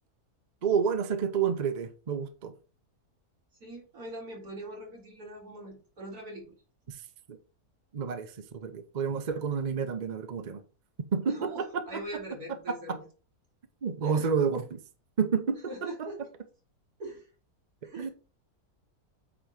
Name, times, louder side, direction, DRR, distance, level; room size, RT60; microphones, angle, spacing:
voice 1, 0.6-2.5 6.9-7.0 7.3-7.4 7.9-10.6 11.1-12.0 12.7-13.0 13.8-14.8 15.2-16.1 18.0-18.1, right 6 dB, 40° right, 8 dB, 0.7 m, -30 dB
voice 2, 3.6-6.5 11.2-13.0 14.0-14.3 15.7-16.2 17.0-17.3 17.8-18.1, right 1 dB, 85° right, -1 dB, 2.9 m, -42 dB
8.7 x 3.1 x 5.1 m, 0.35 s
omnidirectional pair, 1.6 m